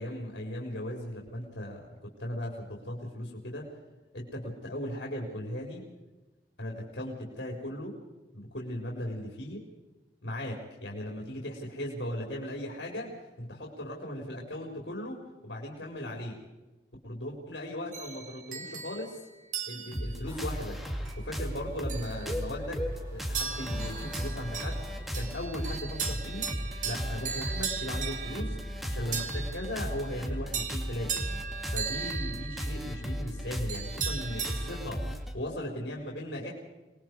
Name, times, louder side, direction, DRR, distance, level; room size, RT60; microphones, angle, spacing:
voice 1, 0.0-3.7 4.1-5.8 6.6-7.9 8.3-9.6 10.2-16.4 17.0-19.3 19.7-20.8 21.2-22.8 23.1-26.5 26.8-31.1 31.7-35.0 35.3-36.5, left 1 dB, 80° left, -1 dB, 4.3 m, -38 dB
sound 1, 17.9-20.2 21.0-21.4 21.9-22.7 23.3-34.8, right 6 dB, 45° right, 2.2 m, -38 dB
sound 2, 19.9-35.3, equal, ahead, 2.3 m, -35 dB
sound 3, 20.2-25.7, equal, 20° right, 6.2 m, -49 dB
27.0 x 20.0 x 4.8 m, 1.1 s
head